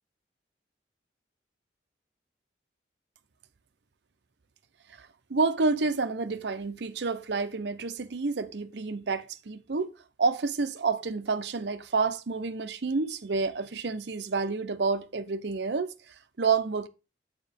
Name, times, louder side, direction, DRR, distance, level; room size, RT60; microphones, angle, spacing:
voice 1, 4.9-9.9 10.2-16.9, right 4 dB, 65° right, 0.6 m, -29 dB
8.7 x 4.7 x 3.5 m
head